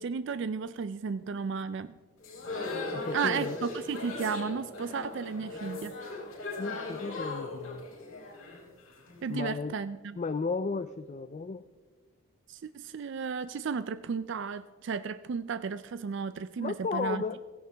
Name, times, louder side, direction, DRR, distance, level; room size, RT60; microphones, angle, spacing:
voice 1, 0.0-2.0 3.1-6.0 9.2-10.2 12.5-17.2, right 5 dB, 55° right, 13 dB, 0.3 m, -34 dB
sound 1, 2.2-9.2, left 3 dB, 80° left, 4.6 m, -38 dB
voice 2, 2.9-3.6 6.6-7.8 9.3-9.7 10.2-11.6 16.6-17.6, left 4 dB, 30° left, 12 dB, 0.3 m, -34 dB
16.0 x 16.0 x 3.4 m, 1.4 s
head